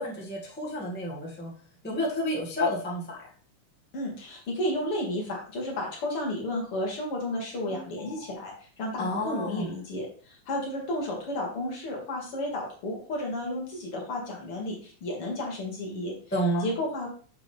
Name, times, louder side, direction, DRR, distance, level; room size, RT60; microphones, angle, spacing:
voice 1, 0.0-1.5 1.8-3.2 7.7-7.8 8.1-8.2 9.0-9.7 16.3-16.7, equal, 5° left, -6 dB, 0.9 m, -30 dB
voice 2, 3.9-16.1 16.6-17.1, left 1 dB, 50° left, -1 dB, 2.2 m, -32 dB
7.0 x 6.6 x 3.4 m, 0.43 s
omnidirectional pair, 3.7 m